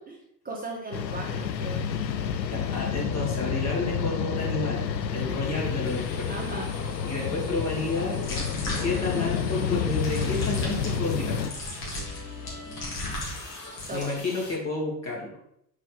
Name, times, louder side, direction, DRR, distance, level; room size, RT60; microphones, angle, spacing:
voice 1, 0.4-1.9 6.3-6.7 7.2-7.4 13.9-14.2, right 2 dB, 15° right, -2 dB, 1.5 m, -37 dB
sound 1, 0.9-11.5, left 7 dB, 85° left, 0.6 m, -29 dB
voice 2, 2.4-6.3 7.0-8.2 8.8-11.6 13.9-15.5, left 2 dB, 30° left, -3 dB, 2.6 m, -31 dB
sound 2, 5.8-14.6, left 2 dB, 70° left, 1.8 m, -42 dB
sound 3, 8.2-9.4 10.0-14.0, left 1 dB, 50° left, 2.8 m, -36 dB
6.3 x 5.5 x 3.5 m, 0.74 s
figure-of-eight pair, 65°, 49 cm